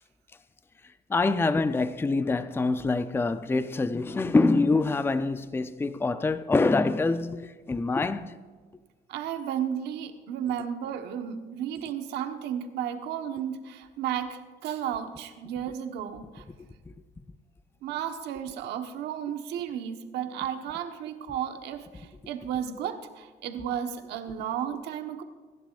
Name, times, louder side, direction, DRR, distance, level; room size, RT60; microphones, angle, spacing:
voice 1, 1.1-8.3 16.9-17.0, left 3 dB, 15° left, 0.5 m, -25 dB
voice 2, 9.1-16.4 17.8-25.2, right 9 dB, 80° right, 1.3 m, -33 dB
24.0 x 11.5 x 2.5 m
cardioid pair, 110°, 17 cm